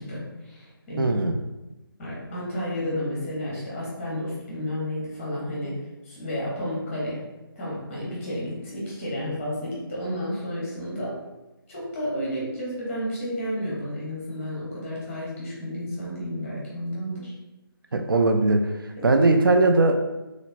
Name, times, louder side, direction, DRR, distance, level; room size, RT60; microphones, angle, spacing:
voice 1, 0.0-1.1 2.0-5.8 6.0-7.2 7.6-11.2 11.7-17.3 19.0-19.1, equal, 10° left, -6 dB, 0.7 m, -31 dB
voice 2, 1.0-1.4 17.9-18.7 19.0-19.9, right 2 dB, 65° right, 5 dB, 0.4 m, -19 dB
3.1 x 2.9 x 2.5 m, 1.0 s
figure-of-eight pair, 160°, 13 cm